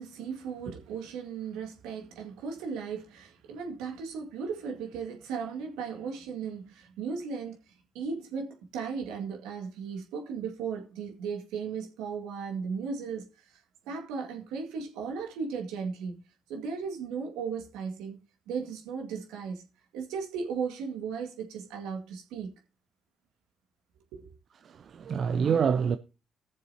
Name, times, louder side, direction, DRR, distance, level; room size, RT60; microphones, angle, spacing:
voice 1, 0.0-7.6 7.9-13.3 13.9-16.2 16.5-18.2 18.5-19.6 19.9-22.5 24.1-24.3, right 5 dB, 75° right, 1.9 m, -36 dB
voice 2, 24.6-26.0, right 7 dB, 55° right, 0.5 m, -26 dB
19.0 x 6.8 x 2.8 m
hypercardioid pair, 50°, 0 cm